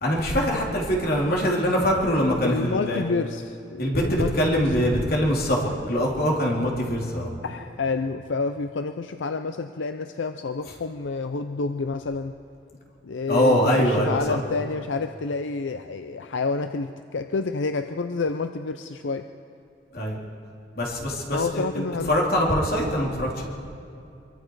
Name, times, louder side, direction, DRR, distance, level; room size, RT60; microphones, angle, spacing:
voice 1, 0.0-3.0 3.8-7.3 13.3-14.4 19.9-20.2 20.8-23.4, equal, 55° left, -2 dB, 3.3 m, -23 dB
voice 2, 2.4-4.7 7.4-12.3 13.0-19.3 21.3-22.1, left 4 dB, 85° left, 8 dB, 0.6 m, -29 dB
24.0 x 24.0 x 4.8 m, 2.6 s
head